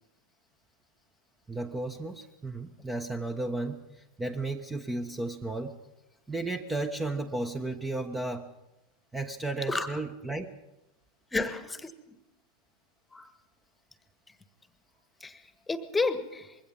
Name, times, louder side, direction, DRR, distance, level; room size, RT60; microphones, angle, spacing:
voice 1, 1.5-5.8 6.3-8.5 9.1-10.5, right 2 dB, 10° right, 6 dB, 1.3 m, -34 dB
voice 2, 9.7-10.0 11.3-12.2 13.1-13.3 15.2-16.6, left 3 dB, 10° left, 13 dB, 1.6 m, -32 dB
25.0 x 22.0 x 5.5 m, 0.92 s
figure-of-eight pair, 90°, 0 cm